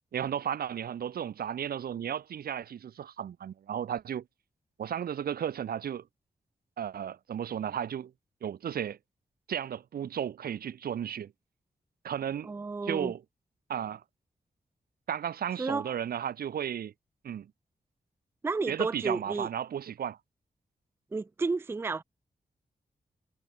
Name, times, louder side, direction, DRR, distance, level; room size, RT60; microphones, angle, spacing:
voice 1, 0.1-4.2 4.8-6.1 6.8-8.1 8.4-9.0 9.5-11.3 12.0-12.5 12.8-13.2 13.7-14.0 15.1-16.9 17.2-17.5 18.7-20.2, right 9 dB, 85° right, 0.8 m, -34 dB
voice 2, 12.4-13.1 15.6-15.9 18.4-19.5 21.1-22.0, right 4 dB, 15° right, 0.4 m, -32 dB
wide cardioid pair, 135°, 15 cm